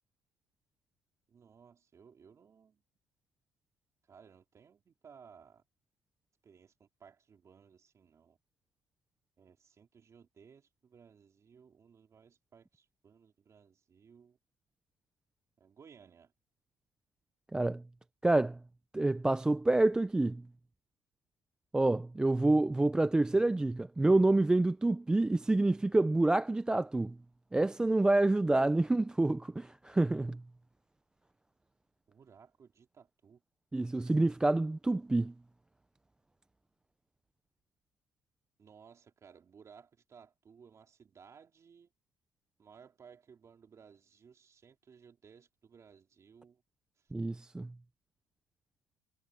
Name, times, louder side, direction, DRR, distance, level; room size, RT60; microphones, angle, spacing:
voice 1, 1.3-2.8 4.1-5.6 6.4-8.4 9.4-14.4 15.6-16.3 32.1-33.4 38.6-41.9 42.6-46.6 47.0-47.1, right 6 dB, 30° right, 3.8 m, -59 dB
voice 2, 17.5-17.8 18.2-18.6 18.9-20.4 21.7-27.2 27.5-30.4 33.7-35.3 47.1-47.7, right 2 dB, 5° right, 0.3 m, -27 dB
cardioid pair, 145°, 10 cm